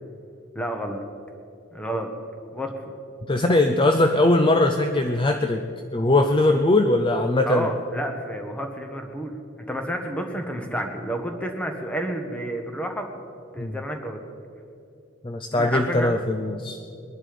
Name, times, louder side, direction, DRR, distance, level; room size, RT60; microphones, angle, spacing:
voice 1, 0.5-1.0 1.7-2.1 2.5-2.9 7.4-9.3 9.7-13.1 13.5-14.2 15.5-16.1, equal, 5° left, 4 dB, 1.3 m, -30 dB
voice 2, 3.3-5.6 5.9-7.7 13.6-13.8 15.2-16.8, left 2 dB, 25° left, 6 dB, 0.5 m, -20 dB
21.5 x 11.0 x 5.1 m, 2.6 s
head